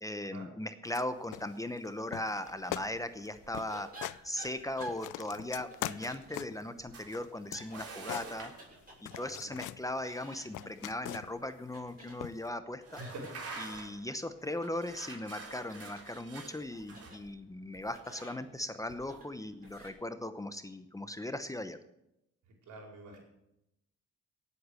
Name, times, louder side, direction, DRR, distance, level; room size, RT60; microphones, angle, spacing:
voice 1, 0.0-3.9 4.2-8.5 9.0-13.0 13.6-21.8, left 1 dB, 10° left, 10 dB, 0.9 m, -38 dB
sound 1, 0.8-1.1 1.3-1.9 2.1-2.4 2.7-2.9 3.2-3.3 3.5-4.2 4.6-6.7 7.1-8.8 9.1-9.8 10.2-11.5 12.2-12.5, left 16 dB, 85° left, 0.5 m, -42 dB
sound 2, 2.4-19.9, right 1 dB, 30° right, 5.9 m, -55 dB
sound 3, 6.9-7.2 7.7-8.7 11.3-11.4 11.9-12.0 12.8-14.1 14.8-17.1, right 3 dB, 50° right, 3.5 m, -46 dB
voice 2, 9.1-9.5 13.0-13.4 22.4-23.2, right 1 dB, 80° right, 0 dB, 4.8 m, -47 dB
17.5 x 8.3 x 6.4 m, 0.85 s
cardioid pair, 90°, 30 cm